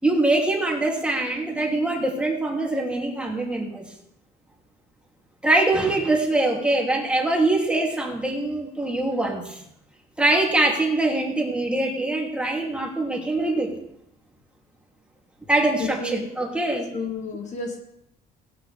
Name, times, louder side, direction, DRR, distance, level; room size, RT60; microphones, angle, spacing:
voice 1, 0.0-3.8 5.4-9.6 10.2-13.7 15.5-16.9, right 2 dB, 5° right, -1 dB, 2.9 m, -23 dB
voice 2, 15.8-16.2 16.9-17.8, left 4 dB, 45° left, 2 dB, 2.0 m, -31 dB
17.0 x 10.0 x 3.4 m, 0.76 s
cardioid pair, 110°, 17 cm